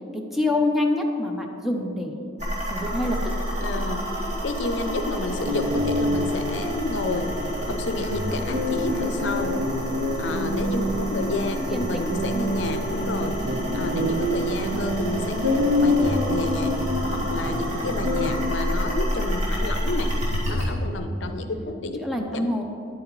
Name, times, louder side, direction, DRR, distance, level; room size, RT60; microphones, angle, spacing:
voice 1, 0.1-2.2 2.7-3.2 10.8-11.3 11.6-12.1 21.4-22.6, left 2 dB, ahead, 1 dB, 0.7 m, -27 dB
sound 1, 2.4-20.7, equal, 40° right, 2.1 m, -29 dB
voice 2, 3.6-7.3 7.7-9.5 10.2-13.3 13.7-16.7 17.1-20.1 20.5-22.4, left 2 dB, 70° left, 7 dB, 0.6 m, -30 dB
sound 2, 5.3-18.4, left 1 dB, 60° right, 0.9 m, -27 dB
9.9 x 8.6 x 3.1 m, 2.7 s
head